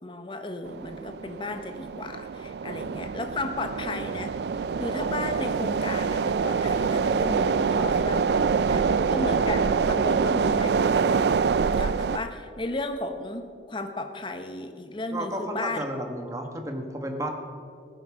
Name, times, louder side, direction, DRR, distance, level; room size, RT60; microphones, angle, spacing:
voice 1, 0.0-11.2 11.8-15.8, left 2 dB, 30° left, 7 dB, 0.9 m, -34 dB
sound 1, 0.6-12.2, right 5 dB, 70° right, 0.4 m, -25 dB
voice 2, 15.1-17.3, right 1 dB, 20° right, 4 dB, 1.3 m, -34 dB
15.5 x 9.2 x 6.2 m, 2.4 s
head